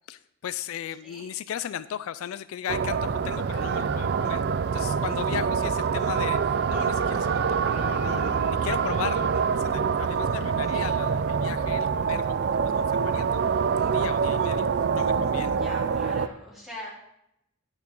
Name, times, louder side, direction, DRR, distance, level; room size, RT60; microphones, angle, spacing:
voice 1, 0.1-4.4 4.7-12.3 12.7-14.6 14.9-15.6, left 9 dB, 70° left, 15 dB, 0.3 m, -36 dB
sound 1, 2.7-16.3, right 6 dB, 50° right, 0.4 m, -25 dB
voice 2, 15.5-16.9, left 1 dB, ahead, -5 dB, 1.8 m, -42 dB
11.0 x 5.7 x 3.9 m, 0.80 s
head